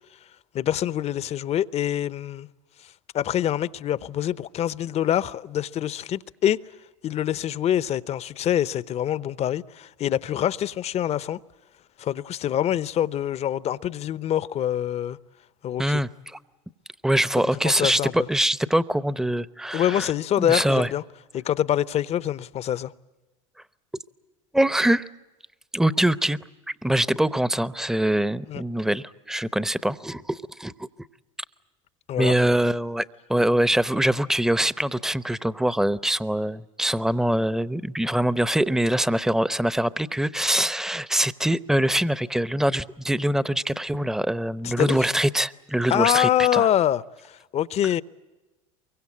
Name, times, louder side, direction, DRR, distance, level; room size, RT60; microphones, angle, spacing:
voice 1, 0.5-2.5 3.1-6.6 7.0-11.4 12.0-15.2 15.6-16.0 17.4-18.3 19.7-21.0 21.3-22.9 28.5-28.6 32.1-32.3 44.6-45.0 45.9-48.0, left 11 dB, 40° left, 0.8 m, -25 dB
voice 2, 15.8-16.4 17.0-20.1 20.4-20.9 24.5-25.1 25.7-26.4 26.8-30.9 32.2-33.0 33.3-46.7, right 1 dB, 5° right, 0.8 m, -23 dB
23.5 x 23.0 x 8.5 m
hypercardioid pair, 85°, 17 cm